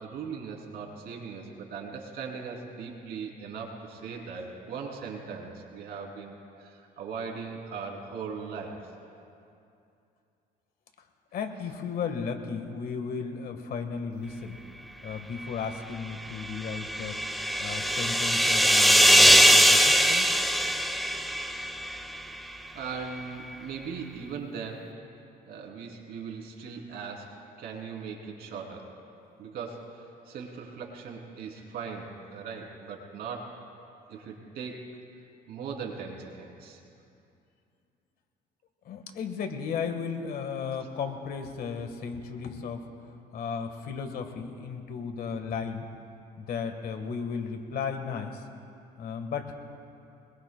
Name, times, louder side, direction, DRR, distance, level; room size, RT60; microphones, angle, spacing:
voice 1, 0.0-8.8 22.7-24.9 25.4-27.3 27.6-28.9 29.4-29.9 30.3-33.6 34.1-34.8 35.5-36.8, right 5 dB, 70° right, 0 dB, 3.1 m, -39 dB
voice 2, 11.3-14.6 15.0-17.2 17.6-20.3 38.8-42.8 43.3-45.9 46.4-48.4 49.0-49.6, left 6 dB, 65° left, 6 dB, 1.5 m, -35 dB
sound 1, 16.4-22.0, equal, ahead, 0.8 m, -21 dB
23.5 x 21.5 x 2.3 m, 2.6 s
cardioid pair, 110°, 17 cm